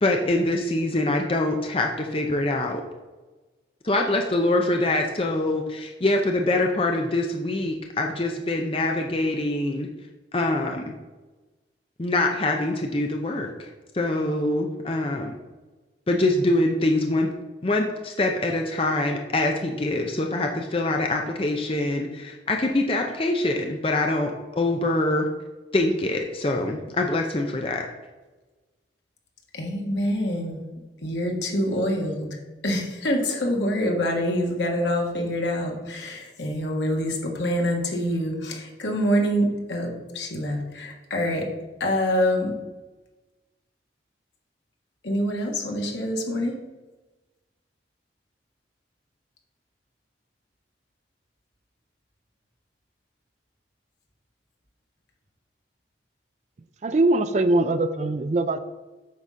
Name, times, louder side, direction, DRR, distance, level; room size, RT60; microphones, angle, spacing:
voice 1, 0.0-2.8 3.8-9.9 10.3-11.0 12.0-15.3 16.1-17.3 17.6-25.3 25.7-27.9, left 2 dB, 30° left, 2 dB, 0.6 m, -24 dB
voice 2, 29.5-30.6 31.0-32.3 32.6-41.5 41.8-42.5 45.0-46.5, equal, 75° left, 1 dB, 1.6 m, -26 dB
voice 3, 56.8-58.6, right 2 dB, 40° right, 12 dB, 0.4 m, -22 dB
8.3 x 4.2 x 6.2 m, 1.2 s
head